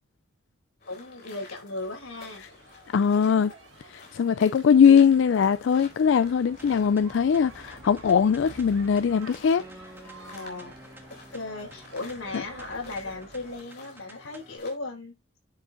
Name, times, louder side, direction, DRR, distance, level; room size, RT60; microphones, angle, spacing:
sound 1, 0.8-14.8, left 4 dB, 50° left, 3.6 m, -51 dB
voice 1, 0.9-2.4 10.3-10.8 11.1-15.2, left 2 dB, 90° left, 5.3 m, -36 dB
sound 2, 1.8-13.6, right 3 dB, 70° right, 1.5 m, -50 dB
voice 2, 2.9-3.5 3.9-9.6 12.3-12.4, left 7 dB, 65° left, 0.3 m, -21 dB
sound 3, 6.6-14.6, right 1 dB, 10° right, 1.4 m, -51 dB
10.5 x 5.1 x 2.6 m
head